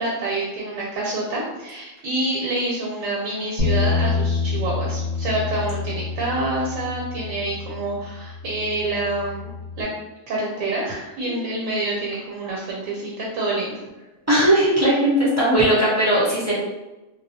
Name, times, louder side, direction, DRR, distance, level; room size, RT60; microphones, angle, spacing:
voice 1, 0.0-9.5 9.8-9.9 10.3-13.8, right 2 dB, 80° right, -4 dB, 0.9 m, -27 dB
Bass guitar, 3.6-9.8, left 4 dB, 55° left, 0.9 m, -27 dB
voice 2, 14.3-16.5, right 1 dB, 25° right, -9 dB, 0.3 m, -18 dB
2.3 x 2.0 x 2.6 m, 1.1 s
omnidirectional pair, 1.3 m